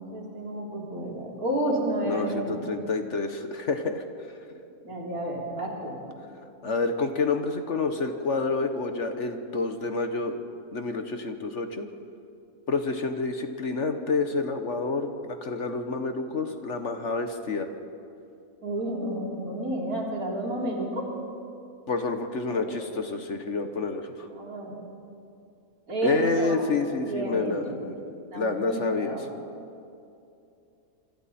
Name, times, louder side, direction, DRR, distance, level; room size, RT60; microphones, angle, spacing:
voice 1, 0.0-2.7 4.8-6.0 18.6-21.0 22.6-22.7 24.3-24.7 25.9-26.6 27.0-27.8 28.3-29.3, right 1 dB, 70° right, -2 dB, 4.3 m, -31 dB
voice 2, 2.1-4.0 6.6-10.4 10.7-11.9 12.7-17.7 21.9-24.3 26.0-28.0 28.3-29.2, left 3 dB, 50° left, 7 dB, 1.4 m, -28 dB
27.0 x 25.5 x 4.3 m, 2.6 s
omnidirectional pair, 1.6 m